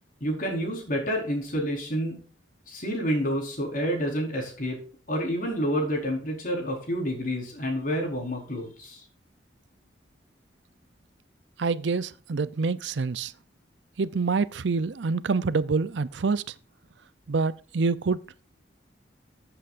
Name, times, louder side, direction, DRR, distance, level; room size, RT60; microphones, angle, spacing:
voice 1, 0.2-2.2 2.7-4.8 5.1-9.0, equal, 50° left, 4.6 m, -29 dB
voice 2, 11.6-13.3 14.0-16.4 17.3-18.2, right 4 dB, 80° right, 0.6 m, -26 dB
14.0 x 8.0 x 2.6 m
head